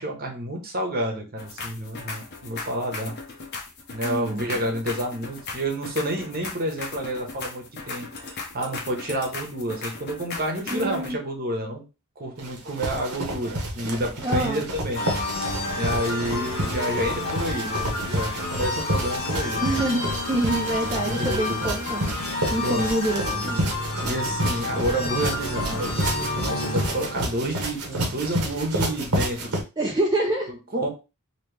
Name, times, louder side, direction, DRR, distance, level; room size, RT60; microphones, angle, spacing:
voice 1, 0.0-3.1 3.9-11.8 12.2-15.0 15.7-19.6 20.5-20.7 21.0-21.6 22.6-22.9 24.0-29.6 30.5-30.9, right 1 dB, 40° right, 2 dB, 1.0 m, -29 dB
sound 1, 1.4-11.1, left 4 dB, 50° left, 0.8 m, -37 dB
voice 2, 4.0-4.6 10.7-11.2 14.2-14.6 19.6-22.1 22.5-23.7 29.8-30.5, right 1 dB, 20° right, -2 dB, 0.5 m, -26 dB
sound 2, 12.4-29.6, right 1 dB, 90° right, 1.1 m, -30 dB
sound 3, 14.9-27.2, left 2 dB, 70° left, 1.3 m, -30 dB
3.0 x 2.9 x 3.3 m, 0.29 s
head